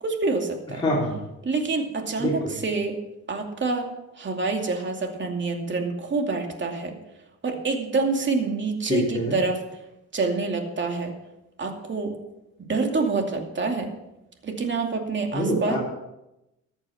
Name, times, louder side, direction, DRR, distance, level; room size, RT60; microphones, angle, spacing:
voice 1, 0.0-0.8 1.4-3.0 3.3-3.9 4.2-6.9 7.4-9.6 10.1-11.1 11.6-12.1 12.7-13.9 14.4-15.8, right 3 dB, 40° right, 3 dB, 2.6 m, -27 dB
voice 2, 0.7-1.2 2.2-2.6 8.8-9.4 15.3-15.8, left 1 dB, 15° left, -7 dB, 4.2 m, -25 dB
14.0 x 9.0 x 5.9 m, 0.92 s
cardioid pair, 90°, 30 cm